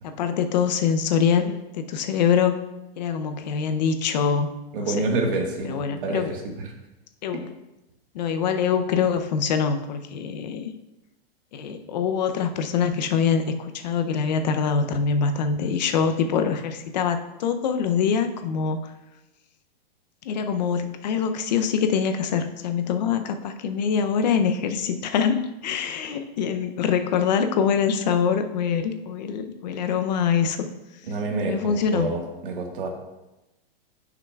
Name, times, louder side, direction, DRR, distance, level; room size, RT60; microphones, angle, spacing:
voice 1, 0.0-2.5 3.0-4.5 5.0-5.1 5.6-6.3 7.2-7.5 8.1-10.7 11.5-18.9 20.2-30.7 31.4-32.1, left 6 dB, 45° left, 8 dB, 0.6 m, -24 dB
voice 2, 4.7-6.4 31.1-32.9, right 2 dB, 60° right, 2 dB, 1.5 m, -27 dB
10.0 x 5.9 x 2.3 m, 0.99 s
supercardioid pair, 170°, 31 cm